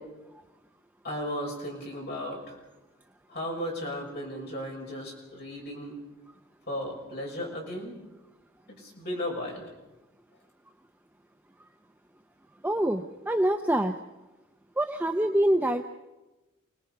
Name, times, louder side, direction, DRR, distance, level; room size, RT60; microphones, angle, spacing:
voice 1, 1.0-2.6 3.3-6.0 6.7-7.9 8.8-9.7, equal, 50° left, -2 dB, 6.4 m, -35 dB
voice 2, 12.6-13.9 14.8-15.8, right 1 dB, 10° right, 5 dB, 0.6 m, -25 dB
29.0 x 19.0 x 5.7 m, 1.1 s
head